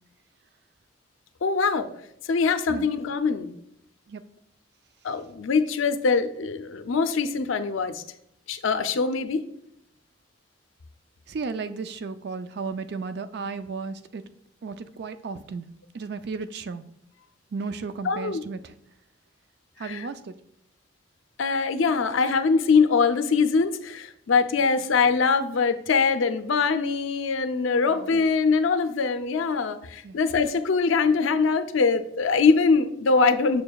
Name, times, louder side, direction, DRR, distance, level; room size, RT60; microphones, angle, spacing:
voice 1, 1.4-1.9 2.3-3.5 5.0-8.0 8.5-9.4 18.0-18.4 19.8-20.1 21.4-33.6, left 4 dB, 85° left, 10 dB, 0.5 m, -23 dB
voice 2, 11.3-14.2 14.6-15.7 15.9-16.8 17.5-18.7 19.8-20.3 27.9-28.1 30.0-30.2, right 4 dB, 55° right, 12 dB, 0.4 m, -34 dB
6.8 x 6.4 x 2.3 m, 0.75 s
head